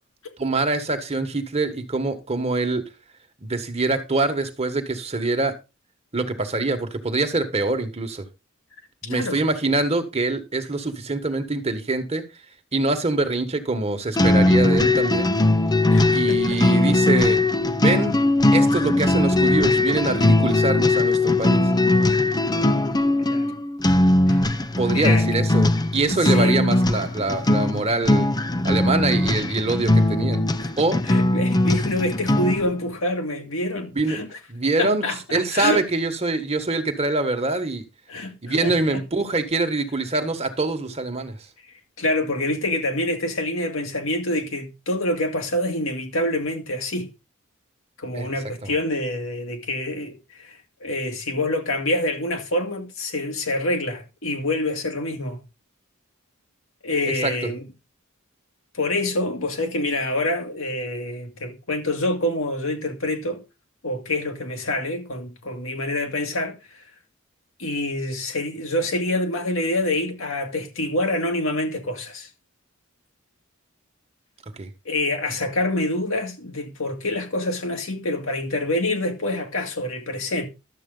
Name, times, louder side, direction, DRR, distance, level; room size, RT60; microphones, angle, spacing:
voice 1, 0.4-2.8 3.4-5.5 6.1-8.2 9.0-12.2 12.7-15.3 16.1-17.4 17.8-18.2 18.5-21.7 24.8-28.3 28.6-30.4 30.8-31.0 33.9-34.2 34.5-35.0 35.3-37.8 38.4-41.4 48.2-48.3 48.6-48.7 57.2-57.3 74.6-74.7, right 3 dB, 30° right, 1.4 m, -24 dB
voice 2, 9.1-9.4 15.9-16.6 23.3-23.5 24.3-24.5 24.9-25.3 26.1-26.6 30.6-30.7 31.0-34.3 34.8-35.8 38.1-39.0 42.0-47.1 48.0-55.4 56.8-57.7 58.7-63.4 63.8-66.8 67.6-72.3 74.9-80.4, left 1 dB, 70° left, 2.1 m, -26 dB
sound 1, 14.2-32.7, left 2 dB, 20° left, 0.6 m, -20 dB
12.0 x 7.8 x 3.9 m
head